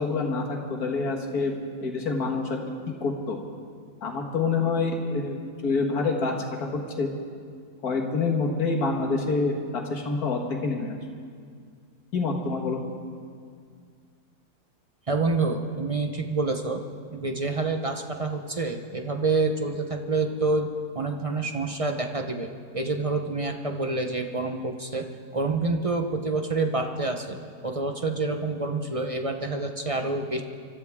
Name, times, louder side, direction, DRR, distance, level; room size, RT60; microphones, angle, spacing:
voice 1, 0.0-2.6 3.0-3.4 4.0-7.1 7.8-11.0 12.1-12.8, left 3 dB, 65° left, 1 dB, 2.1 m, -27 dB
voice 2, 15.1-16.8 17.1-20.7 20.9-25.1 25.3-27.4 27.6-30.4, right 3 dB, 35° right, 4 dB, 0.6 m, -27 dB
25.0 x 13.5 x 3.6 m, 2.1 s
omnidirectional pair, 1.8 m